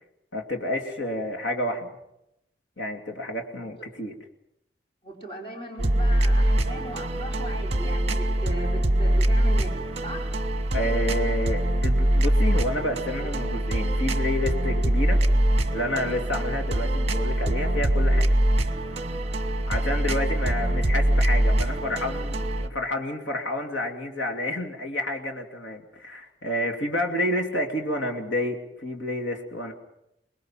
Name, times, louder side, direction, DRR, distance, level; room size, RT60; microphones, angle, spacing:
voice 1, 0.3-1.9 2.8-4.2 10.7-15.2 15.7-18.4 19.7-29.7, left 1 dB, 85° left, 3 dB, 2.9 m, -29 dB
voice 2, 5.0-9.7 10.0-10.3, right 1 dB, 30° left, -1 dB, 4.3 m, -38 dB
sound 1, 5.8-22.7, right 1 dB, 35° right, 1.2 m, -23 dB
25.0 x 20.5 x 5.9 m, 0.83 s
head